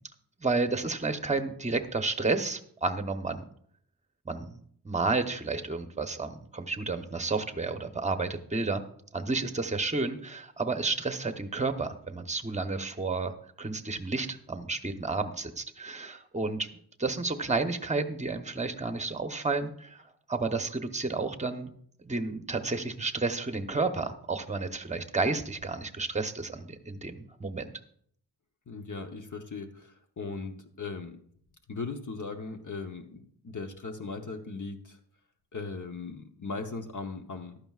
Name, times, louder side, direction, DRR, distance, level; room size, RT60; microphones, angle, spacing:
voice 1, 0.4-3.4 4.2-8.8 9.1-16.7 17.0-20.0 20.3-21.7 22.0-27.7, right 3 dB, 15° right, 7 dB, 0.8 m, -31 dB
voice 2, 28.7-31.1 31.7-35.0 35.5-37.6, left 4 dB, 50° left, 5 dB, 1.0 m, -38 dB
15.0 x 12.0 x 2.4 m, 0.63 s
wide cardioid pair, 110°, 40 cm